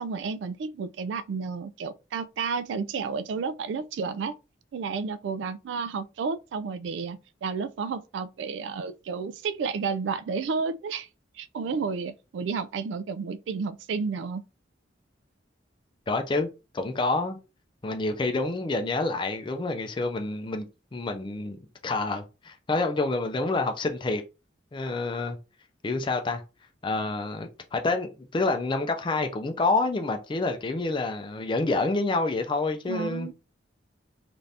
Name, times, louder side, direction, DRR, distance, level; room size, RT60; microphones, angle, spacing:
voice 1, 0.0-4.4 4.7-11.1 11.4-14.4 32.9-33.3, right 5 dB, 75° right, 0.3 m, -31 dB
voice 2, 16.1-16.5 16.7-17.4 17.8-20.7 20.9-24.2 24.7-25.4 25.8-26.4 26.8-33.3, left 3 dB, 25° left, 0.4 m, -28 dB
3.3 x 2.5 x 2.7 m
head